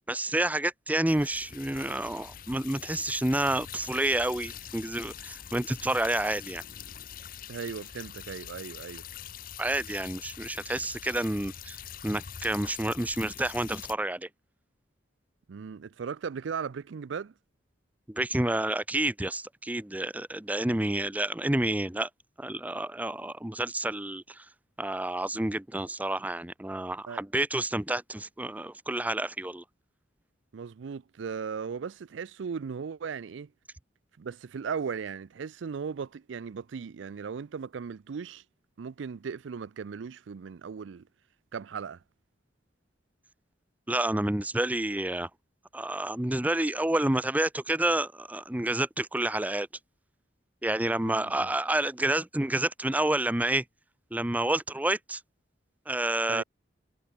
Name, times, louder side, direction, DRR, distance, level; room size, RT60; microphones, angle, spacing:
voice 1, 0.1-6.6 9.6-11.8 12.0-14.3 18.1-22.1 22.4-24.4 24.8-29.6 43.9-45.3 45.7-49.7 50.6-53.6 54.1-55.2 55.9-56.4, right 1 dB, 10° right, 0.5 m, -29 dB
sound 1, 1.1-13.9, left 9 dB, 50° left, 0.7 m, -44 dB
voice 2, 7.5-9.0 15.5-17.3 27.1-27.2 30.5-33.5 34.2-38.4 38.8-41.1 41.5-42.0 51.0-51.5 56.3-56.4, right 6 dB, 75° right, 0.4 m, -37 dB
head